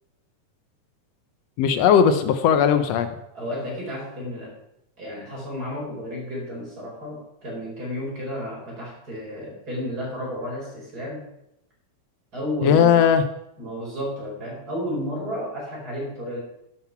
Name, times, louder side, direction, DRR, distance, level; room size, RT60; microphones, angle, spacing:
voice 1, 1.6-3.1 12.6-13.2, left 7 dB, 75° left, 10 dB, 1.6 m, -17 dB
voice 2, 3.3-4.5 5.0-11.3 12.3-13.1 13.6-16.4, equal, 30° right, -4 dB, 5.2 m, -32 dB
11.5 x 7.7 x 5.9 m, 0.83 s
omnidirectional pair, 3.5 m